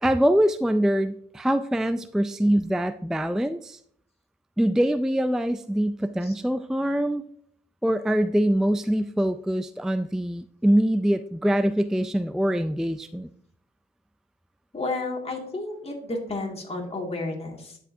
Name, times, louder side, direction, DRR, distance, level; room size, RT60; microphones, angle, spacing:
voice 1, 0.0-3.8 4.6-7.2 7.8-13.3, equal, ahead, 11 dB, 0.4 m, -24 dB
voice 2, 14.7-17.8, left 2 dB, 30° left, -1 dB, 2.2 m, -32 dB
11.5 x 4.9 x 2.7 m, 0.63 s
supercardioid pair, 55°, 21 cm